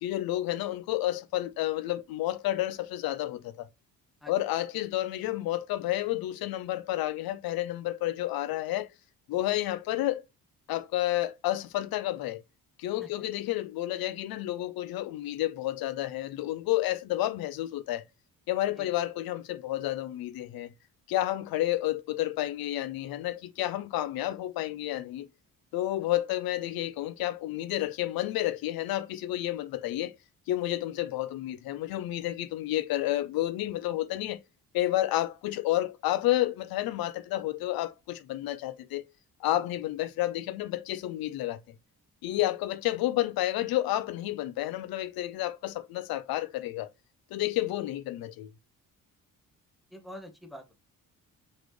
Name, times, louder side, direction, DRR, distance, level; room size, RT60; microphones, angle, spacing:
voice 1, 0.0-3.7 4.3-8.9 9.3-10.2 10.7-12.4 12.8-18.0 18.5-20.7 21.1-25.3 25.7-30.2 30.5-34.4 34.7-39.0 39.4-41.6 42.2-46.9 47.3-48.5, left 15 dB, 85° left, 0.5 m, -30 dB
voice 2, 49.9-50.7, left 1 dB, ahead, 0.9 m, -45 dB
4.0 x 3.2 x 3.1 m
cardioid pair, 90°, 35 cm